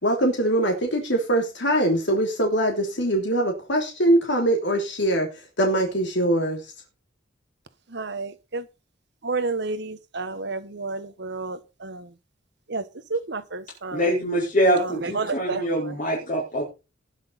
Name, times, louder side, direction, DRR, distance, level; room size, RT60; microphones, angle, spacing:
voice 1, 0.0-5.3 5.6-6.7, right 1 dB, 65° left, 3.1 m, -22 dB
voice 2, 7.9-8.6 9.2-12.1 12.7-14.1 14.8-16.0, right 3 dB, 60° right, 1.3 m, -31 dB
voice 3, 13.9-16.6, equal, 40° left, 4.6 m, -24 dB
19.5 x 6.4 x 4.2 m
head